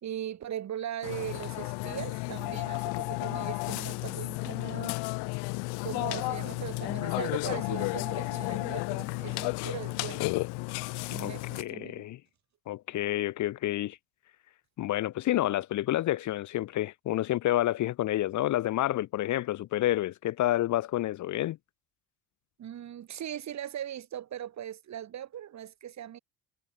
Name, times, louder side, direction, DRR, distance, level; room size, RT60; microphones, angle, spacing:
voice 1, 0.0-5.0 5.8-10.3 11.1-12.1 22.6-26.2, right 10 dB, 45° right, 1.5 m, -39 dB
Burping eructation, 1.0-11.6, left 27 dB, 80° left, 0.8 m, -33 dB
voice 2, 11.6-12.2 12.7-14.0 14.8-21.6, left 14 dB, 50° left, 0.6 m, -29 dB
cardioid pair, 100°, 39 cm